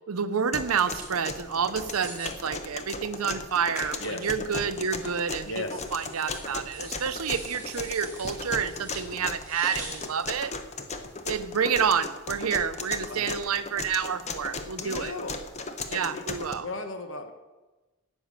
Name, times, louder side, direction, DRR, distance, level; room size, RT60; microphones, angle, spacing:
voice 1, 0.1-5.5 5.9-10.5 11.3-15.1 15.9-16.7, right 6 dB, 85° right, 13 dB, 0.7 m, -29 dB
sound 1, 0.5-16.5, left 3 dB, 30° left, 0.8 m, -36 dB
sound 2, 0.7-11.4, right 1 dB, 10° right, 3.5 m, -46 dB
voice 2, 5.4-5.8 13.1-13.4 14.8-15.4 15.9-16.3 16.6-17.3, left 2 dB, 60° left, 7 dB, 1.3 m, -36 dB
10.0 x 6.2 x 8.8 m, 1.1 s
head